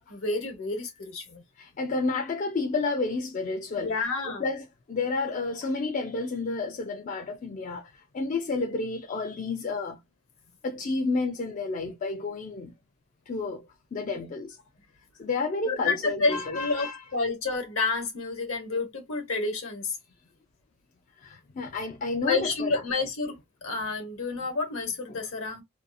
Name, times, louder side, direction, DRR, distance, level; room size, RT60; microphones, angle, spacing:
voice 1, 0.1-1.4 3.7-4.4 14.1-14.2 15.6-20.0 22.2-25.6, left 3 dB, 65° left, 1.0 m, -29 dB
voice 2, 1.6-10.0 10.6-12.7 13.3-14.6 15.2-17.0 21.2-22.8 25.1-25.2, left 3 dB, 35° left, 0.3 m, -31 dB
2.6 x 2.3 x 2.5 m
head